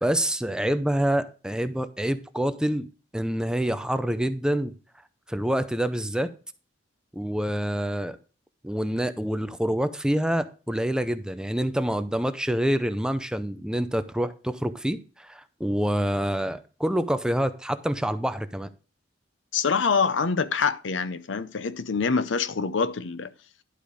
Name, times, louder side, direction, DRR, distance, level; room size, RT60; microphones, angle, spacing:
voice 1, 0.0-4.7 5.3-6.3 7.1-8.2 8.6-18.7, equal, 5° right, 0.6 m, -27 dB
voice 2, 19.5-23.3, left 5 dB, 80° left, 0.7 m, -25 dB
11.5 x 5.1 x 5.0 m
head